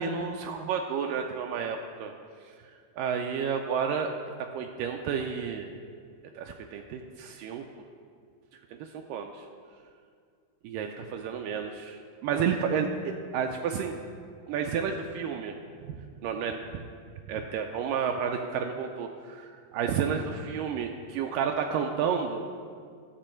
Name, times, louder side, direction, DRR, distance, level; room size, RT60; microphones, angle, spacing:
voice 1, 0.0-2.1 2.5-4.1 4.4-5.8 6.4-7.7 8.8-9.5 10.6-14.0 14.5-15.6 15.9-16.0 16.2-16.8 17.3-22.5, right 6 dB, 80° right, 4 dB, 2.0 m, -31 dB
12.5 x 7.0 x 4.4 m, 2.2 s
omnidirectional pair, 4.2 m